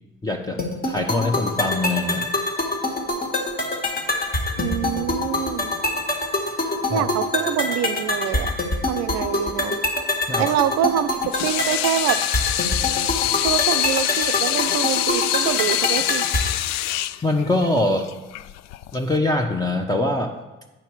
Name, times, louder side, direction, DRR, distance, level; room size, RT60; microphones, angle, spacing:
voice 1, 0.2-2.2 6.9-7.1 10.3-10.5 17.2-18.1 18.9-20.3, left 2 dB, 15° left, 1 dB, 1.0 m, -23 dB
sound 1, 0.6-16.6, left 2 dB, 30° left, 1.8 m, -25 dB
voice 2, 4.6-5.7 6.9-8.6 8.9-9.8 10.4-11.2 11.4-12.2 13.4-16.3, right 12 dB, 65° right, 11 dB, 0.6 m, -25 dB
Water tap faucet / Sink (filling or washing), 11.1-19.2, left 14 dB, 65° left, 0.4 m, -25 dB
8.9 x 5.7 x 4.6 m, 1.0 s
hypercardioid pair, 55°, 29 cm